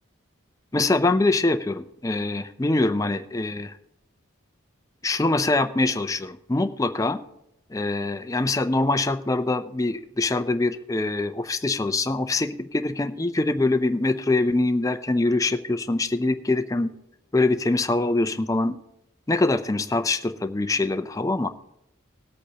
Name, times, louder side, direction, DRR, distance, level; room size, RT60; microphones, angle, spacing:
voice 1, 0.7-3.7 5.0-7.2 7.7-16.9 17.3-18.8 19.3-21.5, left 2 dB, 15° left, 9 dB, 0.4 m, -24 dB
19.5 x 8.3 x 2.9 m, 0.84 s
head